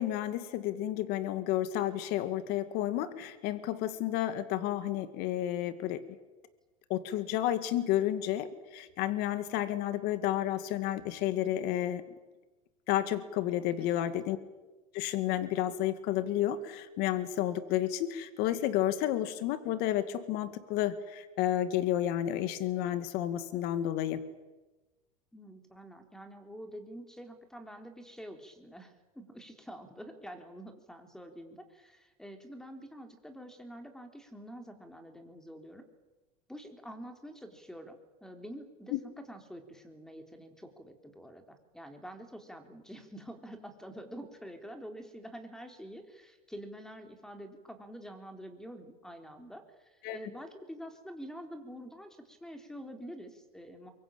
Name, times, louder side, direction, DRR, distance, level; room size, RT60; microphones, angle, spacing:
voice 1, 0.0-6.0 6.9-12.0 12.9-14.4 14.9-24.2 38.9-39.0 50.0-50.2, left 12 dB, 55° left, 12 dB, 2.2 m, -31 dB
voice 2, 13.8-14.4 25.3-35.8 36.5-38.0 38.2-38.9 39.3-53.9, equal, 5° left, 6 dB, 3.8 m, -47 dB
24.5 x 22.5 x 8.9 m, 1.2 s
supercardioid pair, 120°, 19 cm